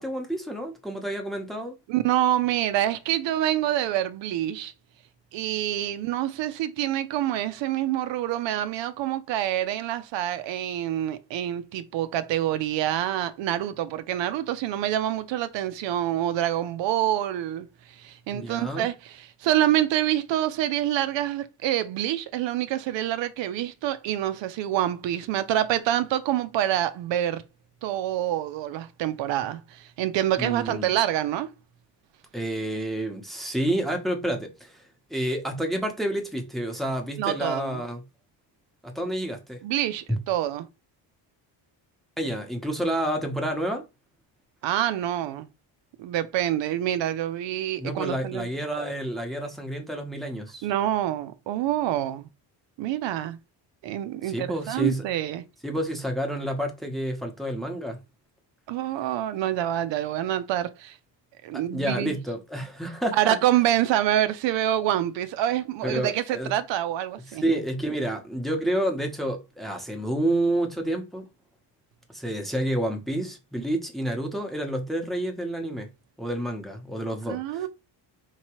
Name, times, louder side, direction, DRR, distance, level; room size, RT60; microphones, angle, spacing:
voice 1, 0.0-1.7 18.3-18.9 30.4-31.0 32.3-34.8 35.1-38.0 38.8-39.6 40.1-40.2 42.2-43.8 47.8-50.7 54.2-55.0 55.6-58.0 61.5-63.4 65.8-66.5 67.3-71.3 72.1-75.9 76.2-77.7, right 1 dB, ahead, 0.8 m, -29 dB
voice 2, 1.9-4.7 5.3-27.4 27.8-31.5 37.2-37.8 39.6-40.7 44.6-45.5 46.0-48.5 50.6-52.2 52.8-53.4 53.8-55.4 58.7-61.0 61.4-62.2 63.2-67.4 77.3-77.7, right 12 dB, 80° right, 0.6 m, -26 dB
4.5 x 2.9 x 3.0 m
cardioid pair, 145°, 43 cm